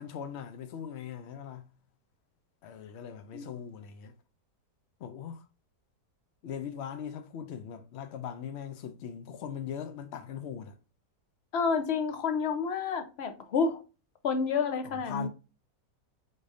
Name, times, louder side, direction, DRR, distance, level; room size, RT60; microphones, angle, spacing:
voice 1, 0.0-1.7 2.6-4.1 5.0-5.4 6.4-10.8 14.8-15.3, left 8 dB, 90° left, 0.5 m, -40 dB
voice 2, 11.5-13.8 14.2-15.3, left 5 dB, 55° left, 0.7 m, -29 dB
4.9 x 4.1 x 2.6 m
omnidirectional pair, 1.8 m